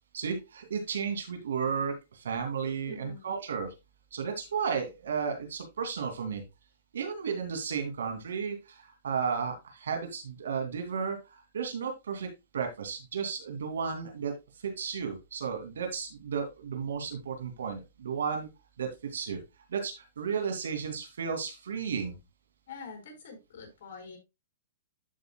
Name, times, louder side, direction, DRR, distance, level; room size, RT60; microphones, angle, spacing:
voice 1, 0.1-3.7 4.1-6.4 6.9-18.5 18.8-19.4 19.7-22.2, right 6 dB, 85° right, 5 dB, 2.7 m, -33 dB
voice 2, 2.9-3.3 22.7-24.2, left 4 dB, 60° left, 3 dB, 4.6 m, -45 dB
13.0 x 5.4 x 2.3 m, 0.23 s
hypercardioid pair, 145°, 0 cm